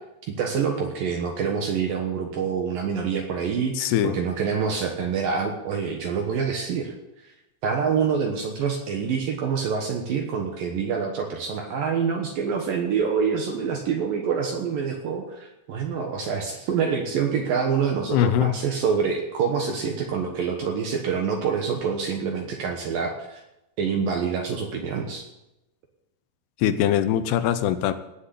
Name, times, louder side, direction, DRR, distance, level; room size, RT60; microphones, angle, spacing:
voice 1, 0.3-6.9 7.6-23.4 23.8-25.2, right 6 dB, 65° right, 2 dB, 2.4 m, -26 dB
voice 2, 3.8-4.2 18.1-18.5 26.6-27.9, left 10 dB, 80° left, 11 dB, 2.5 m, -22 dB
18.0 x 6.5 x 8.4 m, 0.92 s
omnidirectional pair, 5.4 m